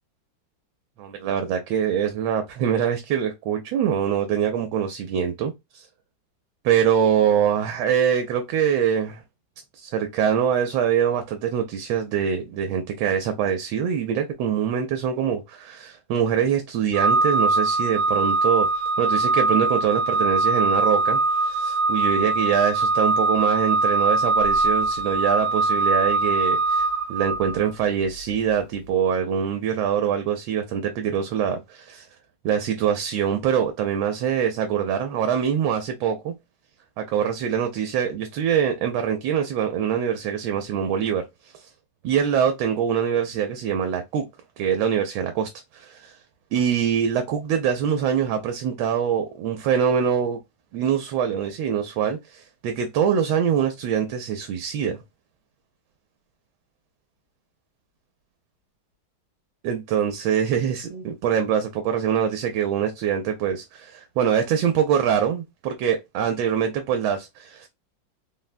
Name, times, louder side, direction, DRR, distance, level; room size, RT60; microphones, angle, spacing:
voice 1, 1.0-5.8 6.6-9.2 9.8-18.7 19.0-32.1 32.4-36.3 37.0-41.2 41.5-41.7 42.0-44.2 44.6-46.1 46.5-50.4 50.7-55.0 59.6-67.7, right 8 dB, 85° right, 1.3 m, -24 dB
Organ, 16.9-27.7, right 3 dB, 65° right, 1.1 m, -22 dB
3.6 x 2.1 x 2.4 m
omnidirectional pair, 2.1 m